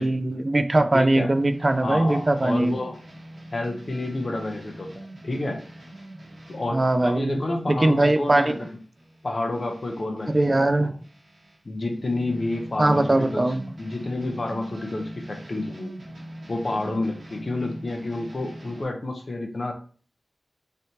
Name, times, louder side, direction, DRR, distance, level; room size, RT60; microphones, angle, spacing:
voice 1, 0.0-2.7 6.7-7.3 7.7-8.6 10.3-10.9 12.8-13.6, right 2 dB, 40° right, 8 dB, 0.3 m, -21 dB
voice 2, 0.9-1.3 1.8-3.0 3.5-5.6 6.5-8.5 9.2-10.9 11.6-13.5 13.8-15.9 16.5-19.7, left 2 dB, 55° left, 3 dB, 0.7 m, -29 dB
sound 1, 1.1-10.6 11.0-18.8, right 1 dB, 85° right, 1.2 m, -42 dB
3.2 x 2.7 x 2.8 m, 0.41 s
cardioid pair, 45°, 0 cm